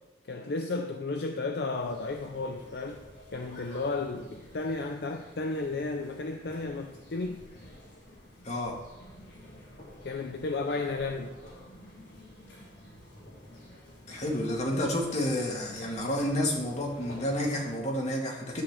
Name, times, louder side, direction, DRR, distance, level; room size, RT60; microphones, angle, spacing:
voice 1, 0.3-3.0 3.3-7.4 10.0-11.3, left 3 dB, 60° left, 5 dB, 0.6 m, -33 dB
sound 1, 1.7-17.8, equal, 80° left, 3.7 m, -50 dB
voice 2, 8.4-8.8 14.1-18.6, left 1 dB, 40° left, -1 dB, 1.9 m, -30 dB
11.5 x 4.1 x 7.4 m, 1.1 s
head